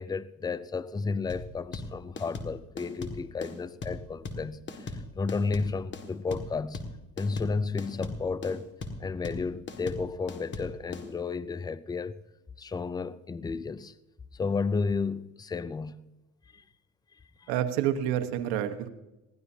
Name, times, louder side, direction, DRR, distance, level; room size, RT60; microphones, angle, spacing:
voice 1, 0.0-6.8 7.2-8.7 9.0-12.2 12.6-13.9 14.3-16.0 16.5-16.6 17.4-17.5, left 4 dB, 10° left, 0.5 m, -32 dB
sound 1, 1.3-11.1, left 3 dB, 30° left, 1.9 m, -38 dB
voice 2, 17.5-18.9, right 10 dB, 80° right, 1.3 m, -28 dB
20.5 x 15.0 x 2.8 m
supercardioid pair, 100°, 36 cm